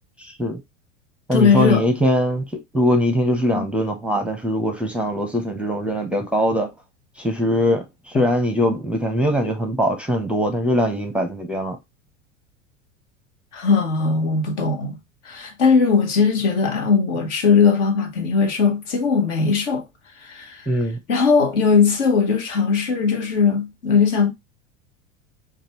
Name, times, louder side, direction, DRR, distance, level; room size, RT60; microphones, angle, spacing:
voice 1, 0.2-0.6 1.3-6.7 7.2-11.8 20.7-21.0, equal, 5° right, 0.6 m, -22 dB
voice 2, 1.3-1.8 3.5-3.7 8.1-8.2 13.5-15.0 15.2-19.9 20.1-20.7 21.1-24.3, left 5 dB, 65° left, 1.2 m, -19 dB
5.1 x 2.4 x 2.9 m
figure-of-eight pair, 80°, 38 cm